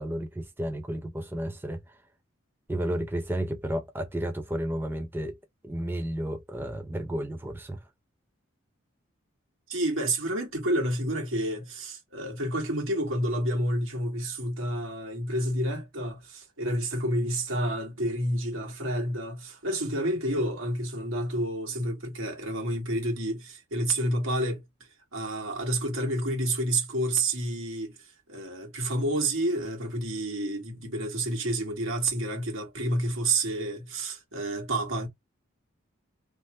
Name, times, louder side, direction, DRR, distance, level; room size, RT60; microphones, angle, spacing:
voice 1, 0.0-1.8 2.7-5.4 5.6-7.8, right 1 dB, 10° right, 0.4 m, -32 dB
voice 2, 9.7-24.6 25.1-35.1, right 1 dB, 80° right, 1.5 m, -29 dB
3.0 x 2.1 x 3.0 m
head